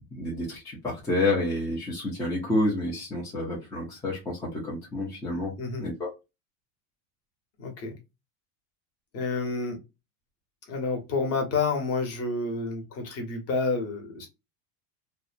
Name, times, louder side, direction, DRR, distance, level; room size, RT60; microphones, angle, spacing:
voice 1, 0.2-5.5 5.8-6.1, left 1 dB, 10° left, 0.4 m, -29 dB
voice 2, 7.6-8.0 9.1-9.8 10.7-14.3, left 4 dB, 35° left, 0.9 m, -29 dB
2.7 x 2.1 x 2.4 m
cardioid pair, 155°, 45 cm